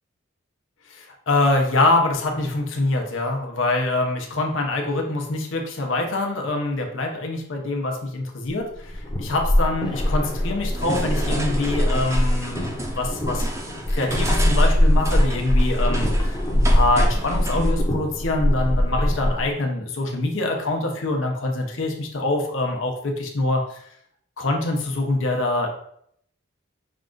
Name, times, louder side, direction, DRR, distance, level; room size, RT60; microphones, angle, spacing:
voice 1, 0.9-23.8 24.4-25.7, left 2 dB, 70° left, 2 dB, 0.8 m, -25 dB
sound 1, 8.7-19.5, equal, 20° left, 0.8 m, -22 dB
sound 2, 10.7-17.7, right 1 dB, 15° right, 0.5 m, -33 dB
5.5 x 2.5 x 3.7 m, 0.68 s
head